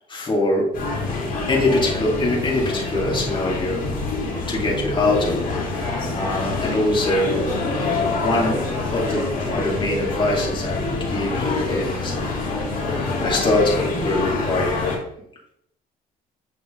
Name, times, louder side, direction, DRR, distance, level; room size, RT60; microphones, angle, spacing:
voice 1, 0.1-0.7 1.5-3.9 4.5-7.4 8.2-8.6 8.9-12.8 13.2-15.0, left 2 dB, 30° left, -3 dB, 2.4 m, -23 dB
sound 1, 0.7-15.0, left 3 dB, 55° left, 2.8 m, -26 dB
7.3 x 4.6 x 3.8 m, 0.72 s
cardioid pair, 110°, 17 cm